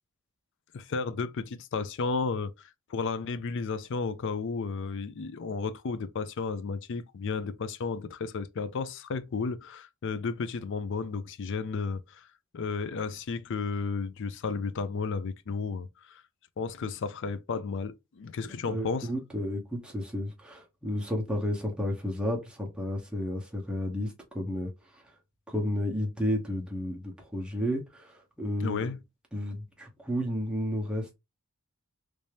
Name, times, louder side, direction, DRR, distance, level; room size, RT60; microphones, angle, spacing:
voice 1, 0.7-2.5 2.9-12.2 12.5-16.2 16.6-19.1 28.6-29.0, left 4 dB, 55° left, 0.4 m, -33 dB
voice 2, 18.7-25.0 25.5-28.9 29.3-31.1, left 1 dB, 5° right, 0.9 m, -32 dB
3.3 x 2.7 x 3.3 m
head